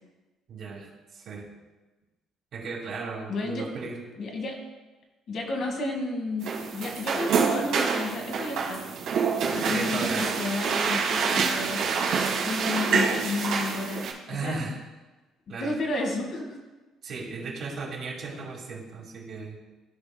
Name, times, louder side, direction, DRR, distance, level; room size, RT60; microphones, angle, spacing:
voice 1, 0.5-1.5 2.5-4.0 9.6-10.4 14.3-14.8 15.5-15.7 17.0-19.6, right 4 dB, 50° right, -2 dB, 2.0 m, -36 dB
voice 2, 3.3-3.7 4.2-4.6 5.3-8.8 9.5-11.8 12.4-14.6 15.6-16.6, left 2 dB, 50° left, 1 dB, 1.4 m, -31 dB
sound 1, 6.4-14.1, right 5 dB, 75° right, 1.8 m, -27 dB
14.0 x 4.8 x 2.2 m, 1.2 s
cardioid pair, 135°, 0 cm